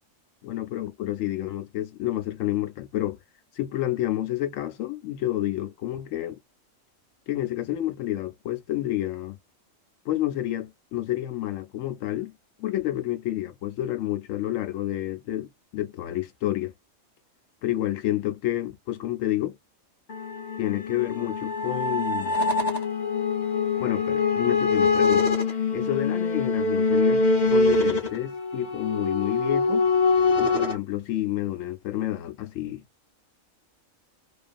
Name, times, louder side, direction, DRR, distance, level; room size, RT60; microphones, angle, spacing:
voice 1, 0.4-3.2 3.6-6.4 7.3-9.4 10.1-12.3 12.6-16.7 17.6-19.6 20.6-22.4 23.8-25.3 25.7-27.3 27.5-29.9 30.4-32.8, left 14 dB, 80° left, 1.0 m, -29 dB
sound 1, 20.1-30.8, left 4 dB, 50° left, 0.5 m, -24 dB
2.4 x 2.4 x 2.4 m
omnidirectional pair, 1.4 m